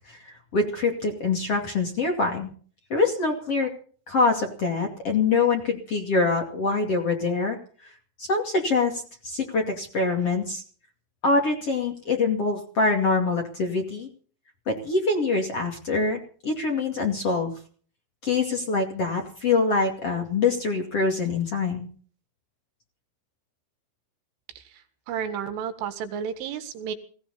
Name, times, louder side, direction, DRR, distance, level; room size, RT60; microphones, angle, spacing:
voice 1, 0.1-2.5 2.9-3.7 4.1-7.6 8.2-10.6 11.2-14.1 14.7-17.5 18.2-21.9, left 3 dB, 40° left, 3 dB, 2.6 m, -24 dB
voice 2, 24.6-27.0, right 7 dB, 80° right, 8 dB, 4.3 m, -32 dB
18.5 x 17.5 x 4.2 m, 0.43 s
omnidirectional pair, 5.7 m